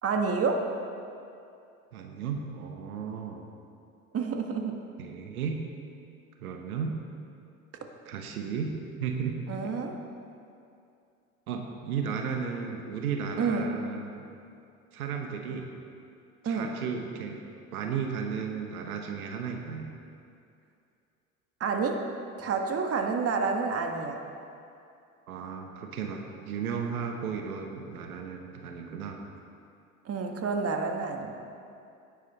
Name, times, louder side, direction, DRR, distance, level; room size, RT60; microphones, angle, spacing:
voice 1, 0.0-0.6 4.1-4.8 9.5-10.0 13.4-13.7 16.4-16.8 21.6-22.0 22.4-24.2 30.0-31.3, right 4 dB, 35° right, 4 dB, 1.5 m, -29 dB
voice 2, 1.9-3.5 5.0-5.6 6.4-7.0 8.0-8.7 9.0-9.4 9.6-9.7 11.5-14.3 14.9-15.7 16.4-17.4 17.7-19.9 25.3-29.3, right 6 dB, 80° right, 3 dB, 1.3 m, -34 dB
17.0 x 10.5 x 4.2 m, 2.5 s
hypercardioid pair, 70°, 43 cm